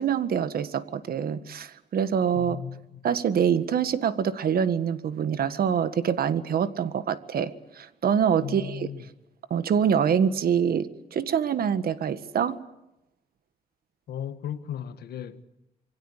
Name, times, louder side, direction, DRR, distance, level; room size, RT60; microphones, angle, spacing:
voice 1, 0.0-2.6 3.0-8.9 9.5-12.6, right 8 dB, 70° right, 1.7 m, -25 dB
voice 2, 2.3-3.0 8.4-9.0 14.1-15.4, left 9 dB, 90° left, 1.7 m, -36 dB
27.0 x 23.5 x 8.2 m
cardioid pair, 115°, 16 cm